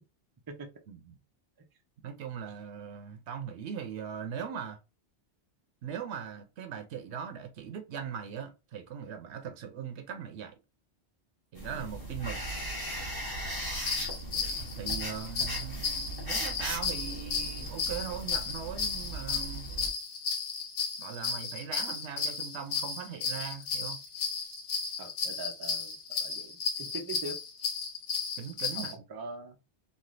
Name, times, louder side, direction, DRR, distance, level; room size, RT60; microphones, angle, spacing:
voice 1, 0.9-1.2 2.0-4.8 5.8-10.5 11.5-12.4 14.8-19.7 21.0-24.0 28.4-28.9, right 7 dB, 75° right, 0.9 m, -40 dB
sound 1, 11.6-19.9, right 1 dB, 20° left, 1.0 m, -38 dB
sound 2, 13.9-28.9, left 5 dB, 85° left, 1.1 m, -34 dB
voice 2, 25.0-27.4 29.1-29.6, right 3 dB, 40° right, 0.3 m, -42 dB
3.2 x 2.4 x 2.4 m
omnidirectional pair, 1.2 m